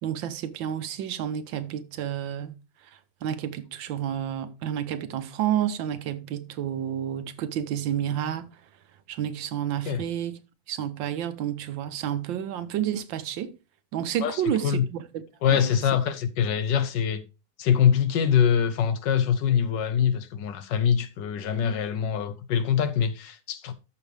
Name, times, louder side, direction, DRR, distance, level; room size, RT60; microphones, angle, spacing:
voice 1, 0.0-2.6 3.2-8.5 9.1-10.4 10.7-13.5 13.9-15.2 15.5-15.7, right 10 dB, 90° right, 1.6 m, -30 dB
voice 2, 14.2-14.8 15.4-17.2 17.6-23.7, left 8 dB, 75° left, 1.5 m, -24 dB
13.0 x 5.6 x 3.3 m
omnidirectional pair, 2.0 m